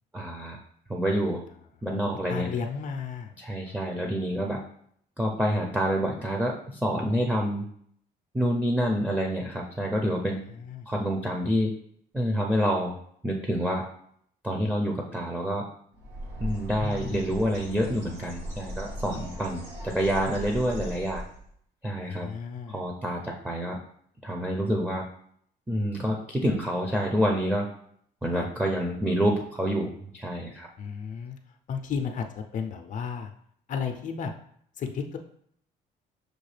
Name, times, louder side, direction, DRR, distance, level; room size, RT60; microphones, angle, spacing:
voice 1, 0.1-0.6 0.9-1.4 1.8-2.5 3.4-4.6 5.2-7.7 8.3-10.4 10.9-11.7 12.1-13.0 13.2-13.8 14.4-15.7 16.4-21.2 21.8-22.3 22.7-23.8 24.2-25.0 25.7-27.7 28.2-30.7, equal, 5° right, 1 dB, 0.5 m, -27 dB
voice 2, 2.3-3.3 3.6-3.7 10.5-10.9 16.8-17.3 22.0-22.8 28.3-28.5 30.8-31.4 31.7-33.3 33.7-34.3 34.8-35.2, left 6 dB, 50° left, 5 dB, 0.5 m, -34 dB
Bird, 15.9-21.5, equal, 85° right, 1.4 m, -38 dB
6.4 x 2.3 x 3.2 m, 0.66 s
cardioid pair, 110°, 17 cm